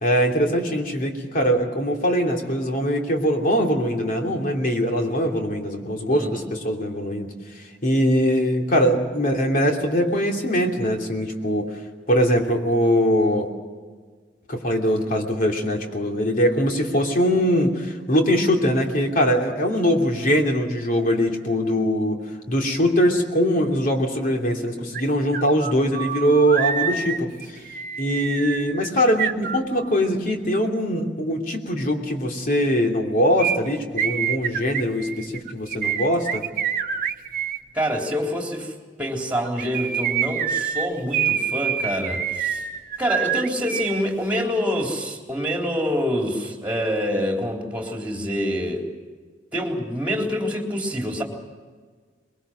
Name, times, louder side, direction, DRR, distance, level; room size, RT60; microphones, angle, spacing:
voice 1, 0.0-7.3 7.8-11.7 12.1-13.5 14.5-22.2 22.5-27.6 28.0-36.4, equal, 50° left, 2 dB, 3.0 m, -22 dB
voice 2, 6.1-6.5 37.7-38.7 39.0-42.6 43.0-48.9 49.5-51.2, equal, 10° right, 0 dB, 3.7 m, -26 dB
sound 1, 24.9-25.0 25.3-30.1 33.4-37.6 39.4-44.1 44.3-44.4, right 8 dB, 50° right, 1.0 m, -27 dB
23.0 x 22.0 x 6.4 m, 1.5 s
head